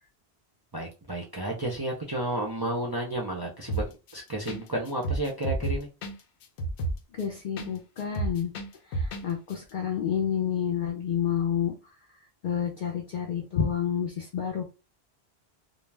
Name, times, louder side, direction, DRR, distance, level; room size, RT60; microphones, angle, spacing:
voice 1, 0.7-3.8 4.1-5.9, right 1 dB, 35° right, -2 dB, 0.4 m, -32 dB
sound 1, 3.7-4.1 4.5-4.6 4.9-7.7 8.0-9.2 9.5-9.6, right 2 dB, 85° left, 0.9 m, -30 dB
voice 2, 7.1-8.5 8.9-11.7 12.4-14.6, left 8 dB, 55° left, 1 dB, 0.6 m, -29 dB
2.3 x 2.2 x 3.2 m, 0.29 s
omnidirectional pair, 1.1 m